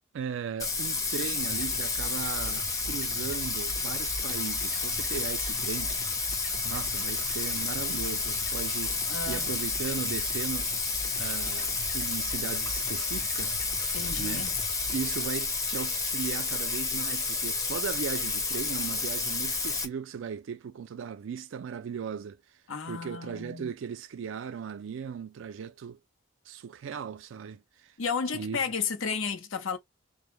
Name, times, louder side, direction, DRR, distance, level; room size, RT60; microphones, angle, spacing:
voice 1, 0.1-5.9 6.6-10.7 11.2-13.7 14.2-14.5 14.9-22.4 22.9-26.0 26.5-27.9 28.3-28.6, right 7 dB, 70° right, 0.3 m, -37 dB
Bathtub (filling or washing), 0.6-19.9, left 4 dB, 15° left, 0.6 m, -30 dB
sound 1, 1.4-15.1, equal, 50° left, 0.8 m, -44 dB
voice 2, 9.1-9.5 13.9-14.6 22.7-23.7 28.0-29.8, left 5 dB, 80° left, 0.7 m, -33 dB
2.2 x 2.1 x 2.9 m
head